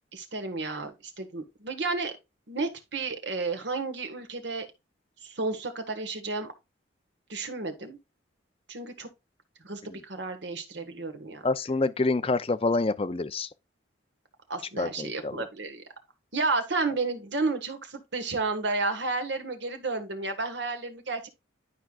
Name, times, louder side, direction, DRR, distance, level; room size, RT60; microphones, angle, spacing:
voice 1, 0.1-2.1 2.5-4.7 5.2-6.5 7.3-8.0 8.7-9.1 9.6-11.4 14.5-15.8 16.3-21.3, right 3 dB, 60° right, 1.4 m, -32 dB
voice 2, 11.4-13.5 14.8-15.5, left 3 dB, 30° left, 0.4 m, -27 dB
11.0 x 4.6 x 2.3 m
head